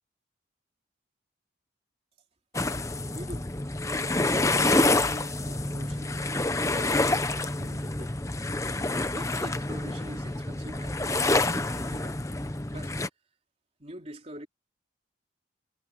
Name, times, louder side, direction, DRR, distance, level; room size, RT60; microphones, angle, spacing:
sound 1, 2.5-13.1, left 2 dB, 15° left, 0.9 m, -27 dB
voice 1, 3.1-3.5 3.8-6.2 6.5-8.1 9.1-12.2 12.7-12.9 13.8-14.5, right 1 dB, 35° right, 3.3 m, -44 dB
head